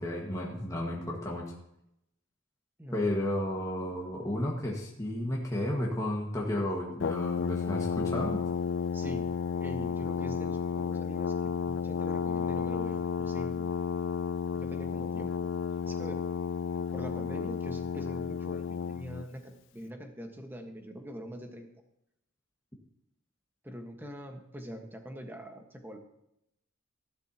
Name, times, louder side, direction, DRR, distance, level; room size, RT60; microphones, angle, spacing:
voice 1, 0.0-1.5 2.9-8.4, left 1 dB, 15° left, -2 dB, 1.7 m, -32 dB
Brass instrument, 7.0-19.3, left 6 dB, 65° left, 0.4 m, -32 dB
voice 2, 8.9-9.3 9.6-13.7 14.5-15.5 15.8-16.2 16.9-21.7 23.6-26.0, equal, 10° right, 4 dB, 1.5 m, -43 dB
14.5 x 12.0 x 3.0 m, 0.80 s
head